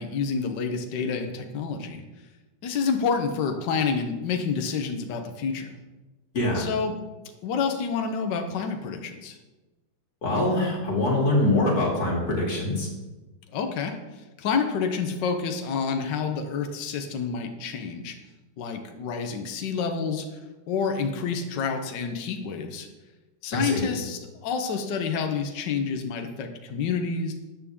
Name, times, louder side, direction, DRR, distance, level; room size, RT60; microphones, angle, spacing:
voice 1, 0.0-2.0 2.6-5.7 6.5-6.9 7.4-9.4 13.5-14.0 14.4-18.2 18.6-20.2 20.7-22.9 23.4-27.3, left 5 dB, 70° left, 5 dB, 1.5 m, -28 dB
voice 2, 6.3-6.7 10.2-12.9 23.5-23.8, left 1 dB, 55° left, -2 dB, 3.2 m, -24 dB
13.0 x 8.6 x 3.6 m, 1.2 s
omnidirectional pair, 2.0 m